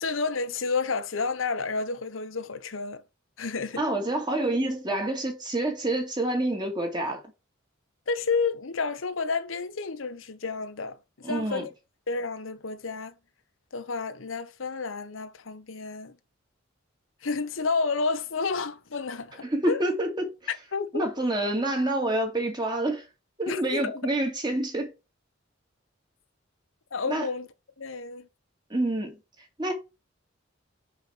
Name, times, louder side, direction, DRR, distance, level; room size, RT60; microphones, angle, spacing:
voice 1, 0.0-3.0 3.4-3.8 8.1-11.7 12.1-13.1 13.7-16.2 17.2-19.8 20.5-21.1 23.5-24.1 26.9-27.5 27.8-28.3, left 4 dB, 80° left, 0.9 m, -30 dB
voice 2, 3.8-7.2 11.2-11.7 19.4-20.3 20.9-23.0 23.4-24.9 27.1-27.3 28.7-29.2 29.6-29.7, right 1 dB, 20° right, 2.1 m, -27 dB
6.0 x 5.8 x 5.8 m
head